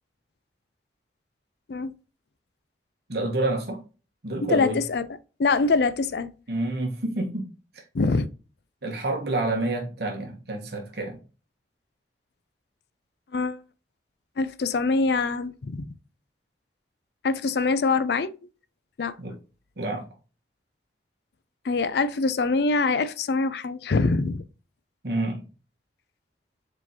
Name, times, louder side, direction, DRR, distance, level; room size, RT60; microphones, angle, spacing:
voice 1, 3.1-3.8 4.2-4.8 6.5-7.9 8.8-11.2 19.2-19.4 19.8-20.1 25.0-25.5, right 2 dB, 60° right, 1.2 m, -29 dB
voice 2, 4.4-5.1 5.4-6.3 7.9-8.3 13.3-13.6 14.4-15.9 17.2-18.3 19.0-19.1 21.6-24.4, left 3 dB, 65° left, 0.4 m, -24 dB
4.9 x 3.8 x 2.8 m
head